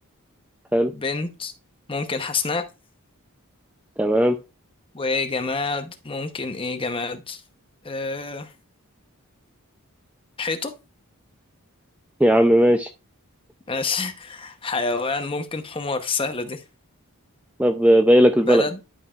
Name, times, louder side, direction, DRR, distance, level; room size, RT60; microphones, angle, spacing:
voice 1, 0.9-1.5 1.9-2.6 4.9-7.4 7.8-8.5 10.4-10.7 13.7-16.6 18.4-18.8, left 4 dB, 25° left, 7 dB, 0.8 m, -27 dB
voice 2, 4.0-4.4 12.2-12.9 17.6-18.6, equal, 5° right, 7 dB, 0.4 m, -16 dB
11.0 x 5.4 x 2.4 m, 0.27 s
head